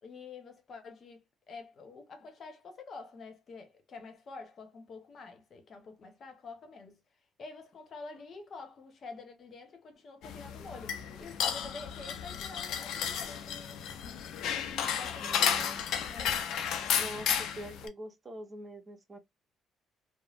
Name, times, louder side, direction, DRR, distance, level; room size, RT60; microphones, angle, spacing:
voice 1, 0.0-7.0 7.4-13.9 14.7-16.5, left 4 dB, 50° left, 0.9 m, -48 dB
sound 1, 10.2-17.9, left 8 dB, 75° left, 0.5 m, -33 dB
voice 2, 15.2-15.9 17.0-19.2, right 1 dB, 30° right, 0.9 m, -45 dB
3.2 x 2.0 x 2.4 m
supercardioid pair, 75°, 0 cm